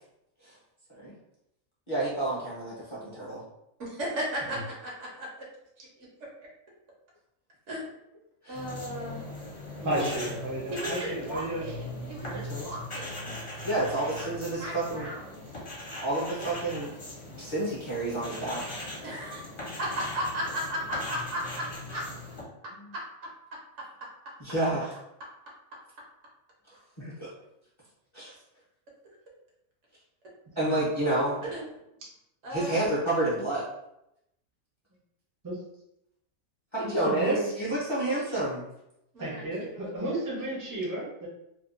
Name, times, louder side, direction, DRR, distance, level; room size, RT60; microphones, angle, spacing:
voice 1, 1.9-3.4 8.4-8.6 9.9-10.0 12.3-12.7 13.6-15.1 16.0-16.9 17.4-18.6 24.4-24.9 27.0-27.3 28.1-28.3 30.6-31.4 32.5-33.6 36.7-38.6, right 2 dB, 25° left, -9 dB, 0.7 m, -29 dB
voice 2, 3.8-5.3 5.8-5.9 7.7-7.9 8.5-9.3 10.7-13.3 14.2-15.5 19.0-19.4 19.8-22.0 31.4-31.7 32.4-32.8 39.1-40.5, equal, 65° right, -3 dB, 1.1 m, -36 dB
sound 1, 8.5-22.4, left 1 dB, 50° left, 1.0 m, -40 dB
voice 3, 9.8-11.7 30.6-30.8 35.4-35.6 36.8-37.5 38.1-38.2 39.2-41.3, right 1 dB, 20° right, -5 dB, 0.6 m, -33 dB
2.8 x 2.3 x 2.4 m, 0.83 s
omnidirectional pair, 1.4 m